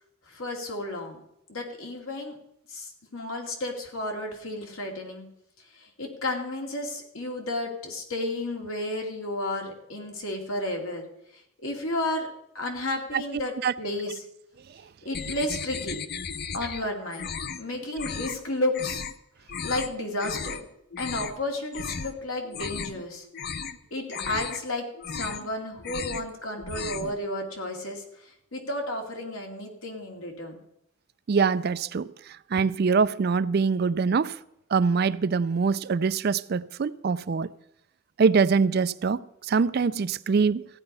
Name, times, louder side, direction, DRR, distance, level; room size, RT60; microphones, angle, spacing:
voice 1, 0.3-1.2 1.5-2.4 2.7-5.3 5.7-11.0 11.6-12.3 12.5-14.2 15.0-16.0 16.5-17.3 17.6-19.0 19.6-20.6 21.0-23.3 23.9-30.6, left 1 dB, 80° left, 2.6 m, -32 dB
sound 1, 15.1-16.8 17.1-17.6 18.0-18.4 18.7-19.1 19.5-19.9 20.2-20.6 20.9-21.4 21.7-22.1 22.4-23.0 23.3-23.8 24.1-24.6 24.9-25.5 25.8-26.3 26.6-27.1, left 6 dB, 50° left, 0.6 m, -35 dB
voice 2, 31.3-32.1 32.5-34.4 34.7-37.5 38.2-40.7, right 5 dB, 50° right, 0.4 m, -24 dB
15.0 x 9.9 x 5.5 m
head